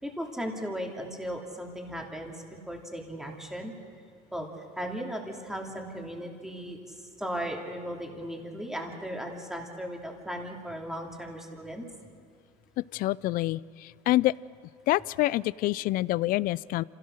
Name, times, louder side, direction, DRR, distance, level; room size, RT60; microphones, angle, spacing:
voice 1, 0.0-3.7 4.3-4.5 4.8-11.9, equal, ahead, 0 dB, 2.7 m, -37 dB
voice 2, 12.9-14.3 14.9-16.8, left 17 dB, 55° left, 21 dB, 0.4 m, -26 dB
26.0 x 16.5 x 6.5 m, 2.2 s
supercardioid pair, 115°, 18 cm